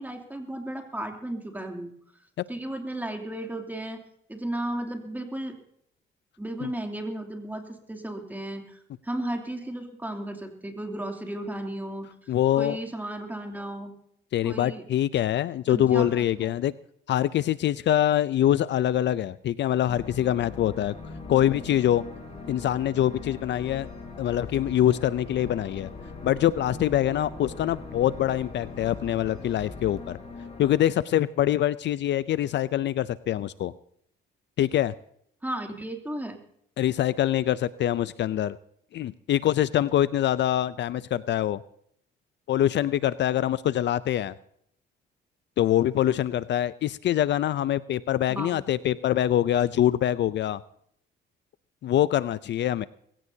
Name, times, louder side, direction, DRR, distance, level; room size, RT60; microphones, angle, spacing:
voice 1, 0.0-1.9 2.5-4.0 4.3-5.6 6.4-12.1 12.5-13.9 14.4-14.8 15.7-16.5 35.4-36.4 48.3-48.6, right 1 dB, 10° right, 3 dB, 2.8 m, -34 dB
voice 2, 12.3-12.8 14.3-16.7 17.1-20.9 21.3-22.0 22.5-23.9 24.2-25.9 26.2-30.2 30.6-33.7 34.6-34.9 36.8-38.6 38.9-41.6 42.5-44.3 45.6-50.6 51.8-52.9, left 12 dB, 65° left, 16 dB, 0.5 m, -24 dB
sound 1, 19.9-30.8, left 3 dB, 30° left, 5.4 m, -41 dB
21.5 x 16.5 x 2.8 m, 0.69 s
cardioid pair, 90°, 20 cm